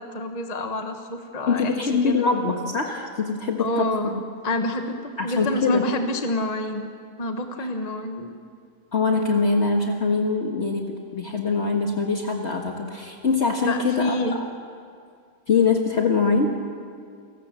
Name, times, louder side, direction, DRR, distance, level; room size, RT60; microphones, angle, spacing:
voice 1, 0.0-1.8 2.0-2.2 3.6-4.1 4.4-6.9 7.2-8.3 13.6-14.4, left 1 dB, 30° left, 5 dB, 1.3 m, -27 dB
voice 2, 1.5-4.2 5.2-5.8 7.6-7.7 8.9-14.4 15.5-16.5, left 4 dB, 50° left, 1 dB, 1.8 m, -23 dB
29.0 x 19.5 x 7.5 m, 2.2 s
omnidirectional pair, 1.6 m